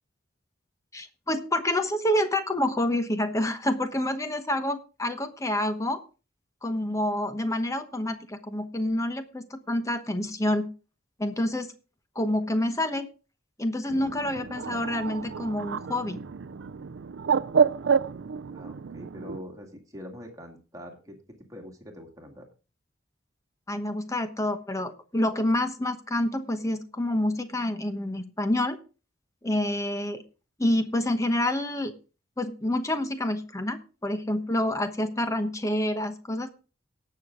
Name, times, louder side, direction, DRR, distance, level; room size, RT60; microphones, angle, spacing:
voice 1, 0.9-6.0 6.6-10.7 11.2-11.7 12.1-13.1 13.6-16.2 23.7-28.8 29.4-30.2 30.6-31.9 32.4-36.5, left 1 dB, 15° left, 9 dB, 1.0 m, -28 dB
Bird, 13.9-19.4, right 6 dB, 75° right, 0.5 m, -28 dB
voice 2, 18.5-21.2 21.5-22.4, equal, 20° right, 2 dB, 2.2 m, -44 dB
18.0 x 6.7 x 3.8 m, 0.33 s
head